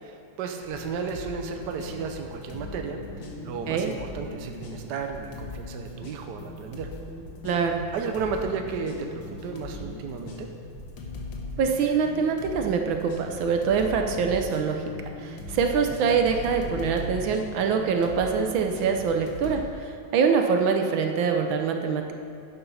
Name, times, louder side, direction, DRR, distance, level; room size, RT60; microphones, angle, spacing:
voice 1, 0.0-3.0 3.4-6.9 7.9-10.5, right 5 dB, 65° right, 4 dB, 1.3 m, -33 dB
sound 1, 0.6-19.6, left 2 dB, 70° left, 1.9 m, -39 dB
voice 2, 7.4-7.8 11.6-14.8 15.2-22.1, right 6 dB, 80° right, 4 dB, 1.5 m, -24 dB
11.0 x 8.0 x 5.6 m, 2.5 s
omnidirectional pair, 2.2 m